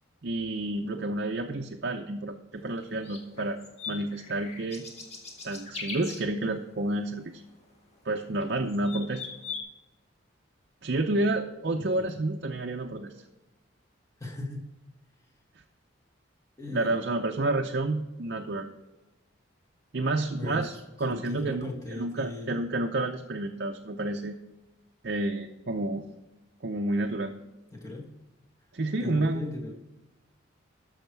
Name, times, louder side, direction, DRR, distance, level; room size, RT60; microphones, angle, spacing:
voice 1, 0.2-3.6 3.9-4.9 5.4-7.4 8.0-9.3 10.8-13.1 16.7-18.7 19.9-24.4 25.0-26.0 26.6-27.3 28.7-29.5, right 2 dB, 55° right, 3 dB, 0.6 m, -30 dB
sound 1, 2.8-6.3 8.2-8.4 8.7-9.6, left 5 dB, 35° left, 1.5 m, -40 dB
voice 2, 14.2-14.6 16.6-17.0 20.3-20.7 21.0-22.5 27.7-28.1 29.0-29.7, left 2 dB, 15° left, 1 dB, 1.6 m, -37 dB
12.0 x 6.5 x 4.6 m, 1.0 s
head